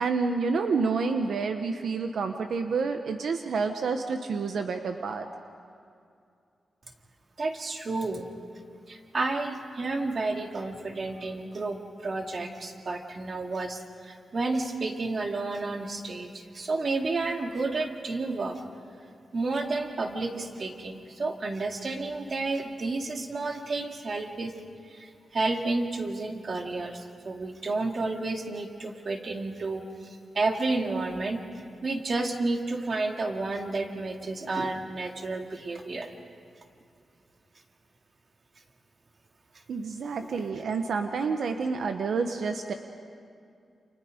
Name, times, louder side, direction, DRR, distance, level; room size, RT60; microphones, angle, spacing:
voice 1, 0.0-5.3 39.7-42.7, right 4 dB, 75° right, 6 dB, 1.0 m, -29 dB
voice 2, 7.4-8.3 8.9-18.6 19.3-24.5 24.8-36.1 40.3-40.4, right 3 dB, 40° right, 3 dB, 2.1 m, -31 dB
29.0 x 28.5 x 5.1 m, 2.4 s
wide cardioid pair, 145°, 0 cm